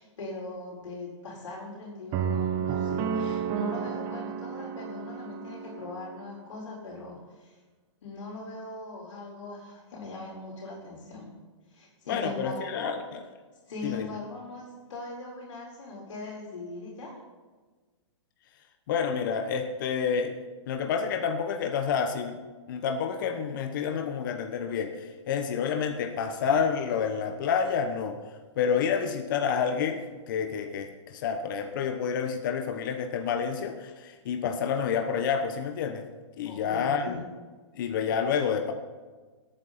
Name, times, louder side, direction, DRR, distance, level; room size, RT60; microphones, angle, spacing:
voice 1, 0.0-7.6 8.0-11.3 11.7-12.9 13.7-17.1 36.4-37.2, left 2 dB, 80° left, -4 dB, 4.2 m, -40 dB
sound 1, 2.1-6.3, right 7 dB, 20° right, 0.7 m, -31 dB
voice 2, 12.1-13.0 13.8-14.1 18.9-20.4 20.7-22.4 22.7-28.2 28.6-36.0 36.4-37.2 37.8-38.7, left 6 dB, 45° left, 6 dB, 1.1 m, -29 dB
18.0 x 9.1 x 4.2 m, 1.4 s
hypercardioid pair, 165°, 15 cm